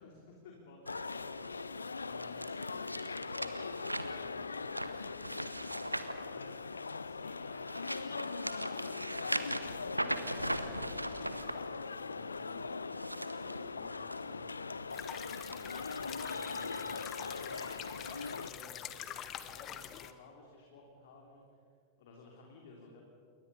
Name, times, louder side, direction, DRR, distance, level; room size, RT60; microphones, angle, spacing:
voice 1, 0.0-2.6 2.9-3.7 4.2-4.6 6.0-6.5 7.0-12.7 13.4-14.6 15.7-18.8 19.3-21.4 22.0-23.0, left 3 dB, 55° left, 0 dB, 3.4 m, -56 dB
sound 1, 0.9-18.5, left 4 dB, 75° left, 0.5 m, -41 dB
sound 2, 0.9-7.0 7.5-11.5 12.8-14.2 14.6-14.9 15.5-15.6, right 1 dB, 85° right, 1.1 m, -40 dB
sound 3, 14.9-20.1, left 10 dB, 30° left, 1.2 m, -45 dB
28.5 x 22.0 x 5.6 m, 2.5 s
figure-of-eight pair, 90°, 0 cm